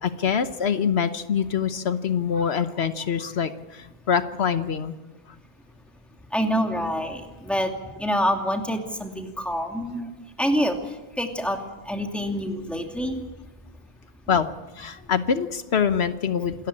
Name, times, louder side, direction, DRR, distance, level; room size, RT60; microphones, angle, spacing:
voice 1, 0.0-4.9 14.3-14.5 14.8-16.5, left 7 dB, 80° left, 10 dB, 1.3 m, -24 dB
voice 2, 6.3-7.7 8.0-10.1 10.4-10.8 11.2-11.6 11.8-13.2, equal, ahead, 3 dB, 2.6 m, -26 dB
27.5 x 14.0 x 8.7 m, 1.1 s
omnidirectional pair, 1.1 m